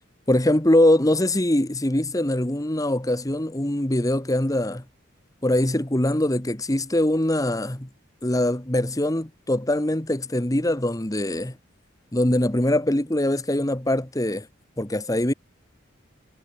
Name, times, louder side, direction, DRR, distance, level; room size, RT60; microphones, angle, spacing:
voice 1, 0.3-4.8 5.4-7.9 8.2-11.5 12.1-14.5 14.8-15.3, left 1 dB, 15° left, 1.4 m, -22 dB
head